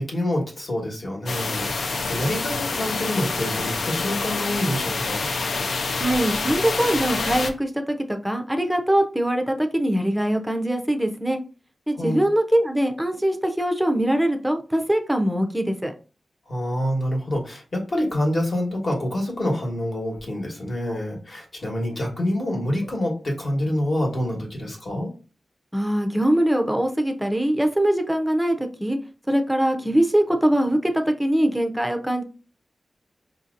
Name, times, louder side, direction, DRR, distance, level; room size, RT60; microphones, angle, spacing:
voice 1, 0.0-5.3 12.0-12.2 16.5-25.1, left 1 dB, 45° left, 0 dB, 1.3 m, -27 dB
sound 1, 1.3-7.5, left 3 dB, 80° left, 0.4 m, -27 dB
voice 2, 6.0-11.4 11.9-15.9 25.7-29.0 29.3-32.2, right 1 dB, 5° right, 5 dB, 0.5 m, -22 dB
5.0 x 2.7 x 2.5 m, 0.35 s
wide cardioid pair, 140°, 0 cm